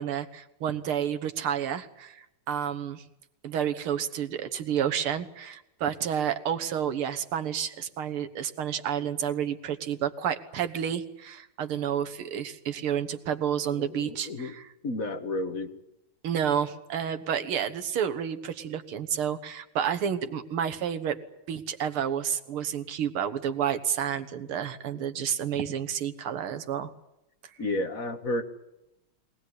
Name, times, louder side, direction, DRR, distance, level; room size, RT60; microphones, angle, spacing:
voice 1, 0.0-3.0 3.4-14.7 16.2-21.2 21.5-26.9, right 8 dB, 90° right, 8 dB, 2.2 m, -30 dB
voice 2, 13.7-14.6 14.8-15.7 27.6-28.4, left 2 dB, 45° left, 6 dB, 1.9 m, -31 dB
23.0 x 18.5 x 9.7 m, 0.86 s
omnidirectional pair, 2.3 m